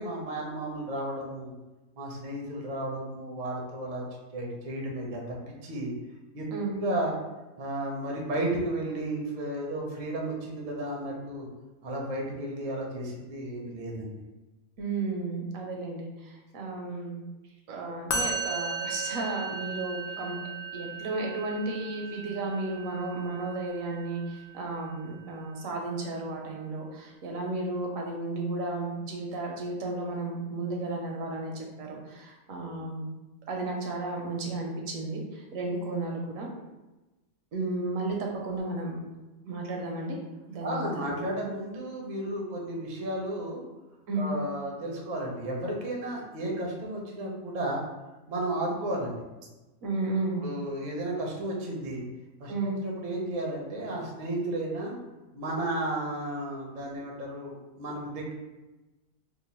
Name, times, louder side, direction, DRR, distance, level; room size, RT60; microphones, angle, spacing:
voice 1, 0.0-1.5 2.0-4.0 4.3-5.2 5.6-5.9 6.3-7.2 7.6-11.5 11.8-14.2 40.6-43.6 44.2-47.8 48.3-49.2 50.4-52.0 52.4-55.0 55.3-58.3, right 1 dB, 45° right, -1 dB, 0.6 m, -33 dB
voice 2, 14.8-17.2 17.7-20.4 20.7-33.1 33.5-36.5 37.5-39.0 39.4-40.2 40.5-41.1 44.1-44.3 49.8-50.4 52.5-52.7, right 2 dB, 75° right, 0 dB, 1.0 m, -33 dB
Musical instrument, 18.1-25.4, right 3 dB, 70° left, 0.5 m, -37 dB
2.9 x 2.2 x 4.2 m, 1.1 s
omnidirectional pair, 1.5 m